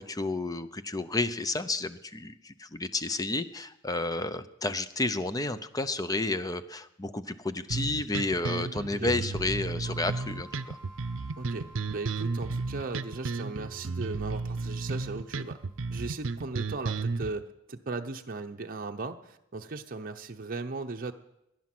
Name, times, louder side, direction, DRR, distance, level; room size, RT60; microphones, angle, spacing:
voice 1, 0.0-10.8, left 2 dB, 20° left, 12 dB, 0.7 m, -31 dB
sound 1, 7.7-17.3, right 3 dB, 80° right, 0.6 m, -33 dB
sound 2, 9.8-16.3, right 2 dB, 50° left, 7.1 m, -54 dB
voice 2, 11.4-15.6 15.9-21.1, right 3 dB, 45° right, 3 dB, 0.8 m, -37 dB
18.5 x 11.0 x 6.1 m, 0.85 s
head